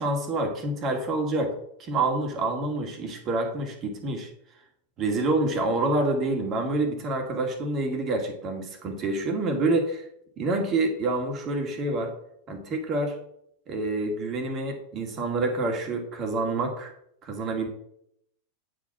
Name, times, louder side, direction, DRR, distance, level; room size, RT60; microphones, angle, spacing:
voice 1, 0.0-4.3 5.0-10.0 10.4-12.1 12.5-13.2 13.7-16.9 17.2-17.7, right 2 dB, 30° right, 4 dB, 2.1 m, -27 dB
9.1 x 5.0 x 5.9 m, 0.72 s
figure-of-eight pair, 90°, 0 cm